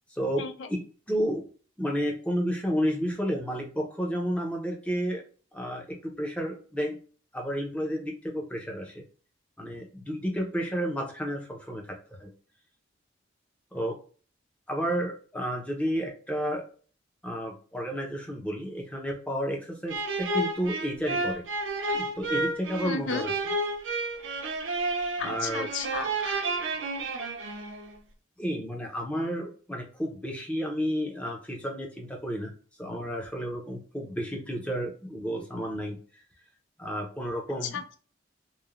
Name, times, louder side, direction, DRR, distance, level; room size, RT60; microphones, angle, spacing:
voice 1, 0.1-1.4 1.8-5.2 5.5-7.0 7.3-9.0 9.6-12.3 13.7-14.0 14.7-16.6 17.2-21.4 21.9-23.3 25.2-25.7 28.4-32.5 32.8-36.2 36.8-37.8, equal, 5° left, 1 dB, 0.5 m, -31 dB
sound 1, 19.9-27.9, right 2 dB, 70° right, 0.5 m, -31 dB
voice 2, 22.8-23.2 25.2-26.4 37.6-38.0, left 5 dB, 70° left, 9 dB, 0.4 m, -34 dB
3.0 x 2.0 x 2.4 m, 0.40 s
head